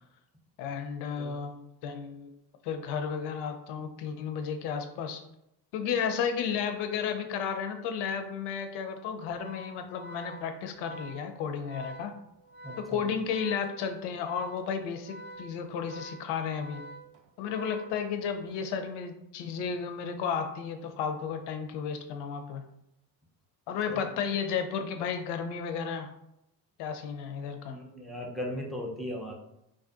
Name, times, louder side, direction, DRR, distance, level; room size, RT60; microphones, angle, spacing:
voice 1, 0.6-2.3 2.6-5.2 5.7-12.1 12.8-16.8 17.4-22.6 23.7-26.1 26.8-27.8, left 6 dB, 55° left, 7 dB, 0.5 m, -33 dB
Organ, 9.3-18.5, right 1 dB, 80° right, 0.6 m, -47 dB
voice 2, 12.6-13.0 23.9-24.0 27.7-29.3, equal, ahead, -1 dB, 0.4 m, -37 dB
2.5 x 2.3 x 2.3 m, 0.81 s
hypercardioid pair, 60°, 50 cm